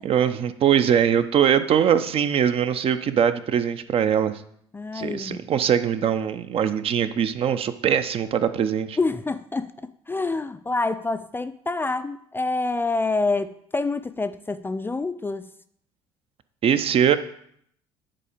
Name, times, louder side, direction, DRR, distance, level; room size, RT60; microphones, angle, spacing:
voice 1, 0.0-4.3 4.9-9.0 16.6-17.2, right 8 dB, 40° right, 11 dB, 0.6 m, -22 dB
voice 2, 4.7-5.4 9.0-15.5, left 3 dB, 15° left, 11 dB, 0.4 m, -27 dB
10.0 x 4.2 x 4.9 m, 0.68 s
figure-of-eight pair, 55°, 15 cm